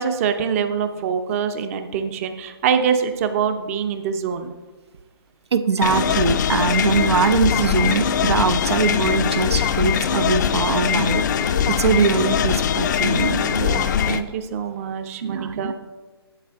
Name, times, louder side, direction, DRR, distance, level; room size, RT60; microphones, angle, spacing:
voice 1, 0.0-4.5 13.4-15.7, right 7 dB, 35° right, 0.6 m, -24 dB
voice 2, 5.5-13.5 15.2-15.7, right 5 dB, 90° right, 0.5 m, -22 dB
sound 1, 5.8-14.2, left 8 dB, 45° left, 0.4 m, -21 dB
8.1 x 8.1 x 3.5 m
hypercardioid pair, 145°, 13 cm